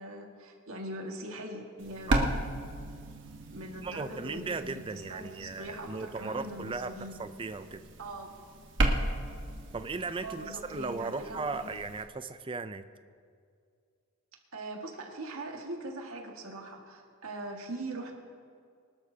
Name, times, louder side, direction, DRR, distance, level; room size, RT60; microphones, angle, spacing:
voice 1, 0.0-2.1 3.5-7.2 8.0-8.3 10.2-11.7 14.5-18.2, right 1 dB, 80° right, 1 dB, 1.9 m, -41 dB
sound 1, 1.8-12.0, right 1 dB, 60° right, 1.4 m, -35 dB
voice 2, 3.8-7.8 9.7-12.9, right 4 dB, 25° right, 11 dB, 0.5 m, -37 dB
24.0 x 12.5 x 2.8 m, 2.2 s
head